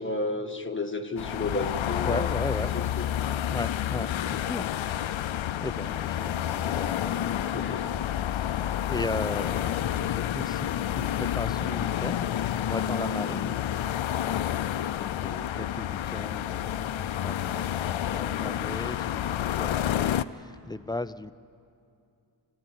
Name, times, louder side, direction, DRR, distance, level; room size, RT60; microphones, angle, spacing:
voice 1, 0.0-2.3 2.6-3.1 6.1-6.7 7.2-7.9, left 2 dB, 25° left, 5 dB, 1.6 m, -33 dB
sound 1, 1.2-20.2, left 11 dB, 85° left, 0.6 m, -29 dB
voice 2, 2.0-2.8 3.5-7.8 8.3-12.3 12.6-13.6 14.9-21.3, left 2 dB, 10° left, 12 dB, 0.6 m, -37 dB
27.0 x 15.0 x 9.8 m, 2.5 s
cardioid pair, 60°, 46 cm